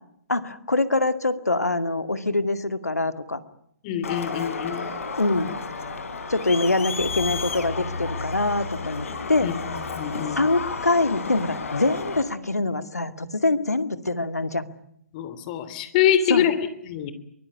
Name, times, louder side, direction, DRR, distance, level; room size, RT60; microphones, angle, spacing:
voice 1, 0.3-3.4 5.2-5.5 6.3-9.5 10.3-14.7 16.3-16.5, left 2 dB, 85° left, 11 dB, 2.1 m, -24 dB
voice 2, 3.8-4.9 9.4-9.5 9.9-10.4 15.1-16.6 16.8-17.1, left 10 dB, 30° left, 13 dB, 3.1 m, -24 dB
Crowd, 4.0-12.2, left 4 dB, 60° left, 4.4 m, -32 dB
23.5 x 20.5 x 9.8 m, 0.72 s
figure-of-eight pair, 135°, 8 cm